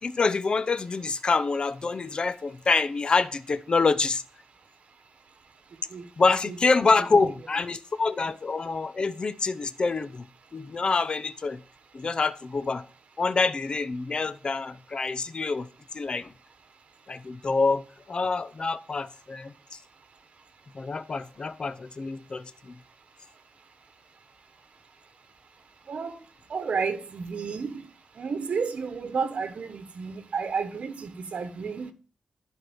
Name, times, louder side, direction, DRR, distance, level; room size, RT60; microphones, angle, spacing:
voice 1, 0.0-4.2 6.2-10.3 10.5-11.6 11.9-12.8 13.2-15.7 15.9-16.3 17.1-19.8 20.7-22.7, left 4 dB, 45° left, 0.7 m, -26 dB
voice 2, 25.9-26.2 26.5-27.9 28.2-31.9, right 5 dB, 70° right, 1.4 m, -31 dB
11.0 x 4.7 x 7.1 m
wide cardioid pair, 105°, 2 cm